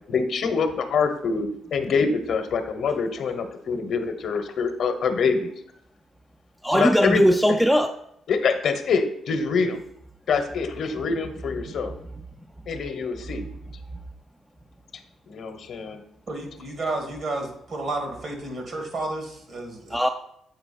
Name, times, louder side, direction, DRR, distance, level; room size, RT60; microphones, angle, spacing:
voice 1, 0.1-5.5 6.7-7.2 8.3-9.8 10.3-11.9 12.7-13.5 15.3-16.0, left 5 dB, 65° left, 7 dB, 0.9 m, -25 dB
voice 2, 6.6-7.9 19.9-20.1, equal, 5° right, 5 dB, 0.4 m, -19 dB
voice 3, 16.3-20.0, right 2 dB, 55° right, 3 dB, 2.1 m, -31 dB
8.0 x 4.4 x 4.2 m, 0.74 s
supercardioid pair, 65°, 0 cm